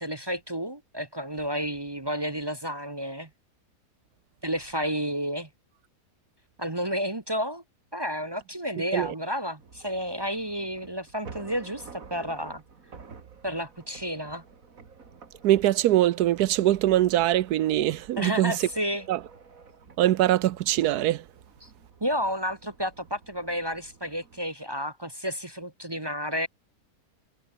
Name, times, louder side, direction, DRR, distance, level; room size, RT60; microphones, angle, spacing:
voice 1, 0.0-3.3 4.4-5.5 6.6-7.6 7.9-12.6 13.4-14.4 18.2-19.1 21.6-21.7 22.0-26.5, equal, 20° right, 0.8 m, -31 dB
sound 1, 9.6-24.4, right 5 dB, 55° right, 2.5 m, -50 dB
voice 2, 15.4-18.7 19.1-19.2 20.0-21.2, right 13 dB, 75° right, 1.2 m, -22 dB
omnidirectional pair, 1.7 m